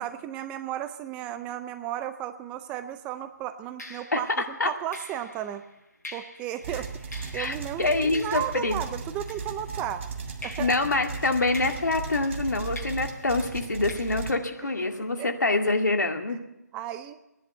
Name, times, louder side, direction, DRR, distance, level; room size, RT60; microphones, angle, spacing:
voice 1, 0.0-5.6 6.1-10.0 10.4-10.7 15.2-15.3 16.7-17.2, right 11 dB, 10° right, 10 dB, 0.5 m, -34 dB
sound 1, 2.6-2.9 3.8-10.0 10.4-15.1, left 2 dB, 65° left, 6.5 m, -47 dB
sound 2, 6.6-14.3, right 5 dB, 40° right, 1.6 m, -37 dB
voice 2, 7.3-8.8 10.6-16.4, left 2 dB, 80° left, 4 dB, 2.2 m, -26 dB
17.0 x 10.5 x 7.9 m, 0.91 s
figure-of-eight pair, 155°, 10 cm